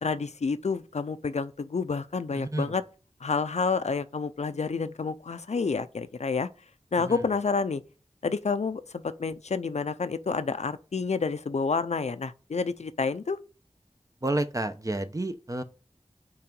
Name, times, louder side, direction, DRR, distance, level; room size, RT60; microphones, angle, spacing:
voice 1, 0.0-2.8 3.2-6.5 6.9-7.8 8.2-13.4, left 4 dB, 80° left, 0.5 m, -29 dB
voice 2, 2.3-2.7 7.0-7.2 14.2-15.6, right 2 dB, 30° right, 0.9 m, -30 dB
5.7 x 4.7 x 5.3 m
wide cardioid pair, 50°, 11 cm